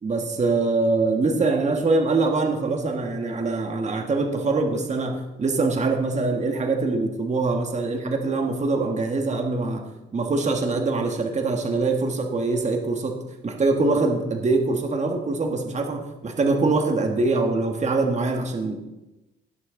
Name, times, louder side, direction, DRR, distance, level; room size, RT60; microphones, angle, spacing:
voice 1, 0.0-9.8 10.1-13.2 13.4-18.8, right 3 dB, 35° right, 3 dB, 1.6 m, -23 dB
17.5 x 6.3 x 3.9 m, 0.99 s
cardioid pair, 90°, 20 cm